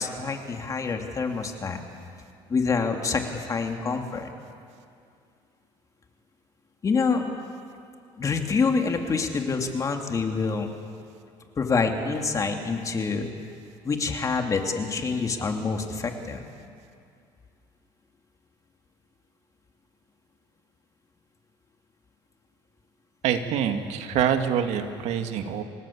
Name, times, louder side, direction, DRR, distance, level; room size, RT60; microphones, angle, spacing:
voice 1, 0.0-1.8 2.5-4.3 6.8-7.2 8.2-10.7 11.6-13.3 13.8-16.5, left 4 dB, 30° left, 4 dB, 2.6 m, -26 dB
voice 2, 23.2-25.6, right 8 dB, 70° right, 6 dB, 2.1 m, -25 dB
28.0 x 19.0 x 8.6 m, 2.4 s
cardioid pair, 130°, 12 cm